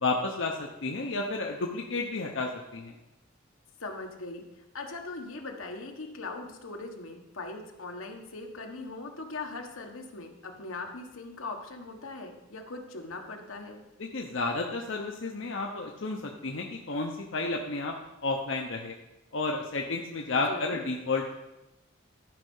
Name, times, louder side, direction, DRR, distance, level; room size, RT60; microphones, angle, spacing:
voice 1, 0.0-2.9 14.0-17.9 18.2-18.9 19.3-21.2, left 3 dB, 65° left, 1 dB, 0.8 m, -31 dB
voice 2, 3.8-4.4 4.7-13.8 20.5-20.8, left 3 dB, 85° left, 3 dB, 1.4 m, -40 dB
12.5 x 5.5 x 5.5 m, 0.96 s
head